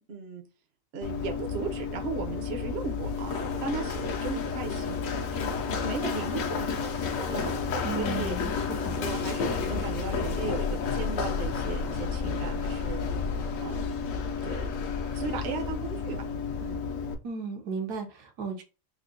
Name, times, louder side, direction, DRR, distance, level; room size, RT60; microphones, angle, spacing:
voice 1, 0.1-0.4 0.9-7.6 8.0-8.4 9.0-13.0 13.6-13.8 14.4-14.6 15.1-16.3 16.6-16.8, right 4 dB, 55° right, 2 dB, 0.8 m, -36 dB
Run, 1.0-17.1, left 5 dB, 65° left, 0.9 m, -31 dB
voice 2, 7.8-9.0 17.2-18.6, right 4 dB, 75° right, 4 dB, 1.3 m, -35 dB
3.6 x 2.1 x 3.7 m, 0.31 s
omnidirectional pair, 1.7 m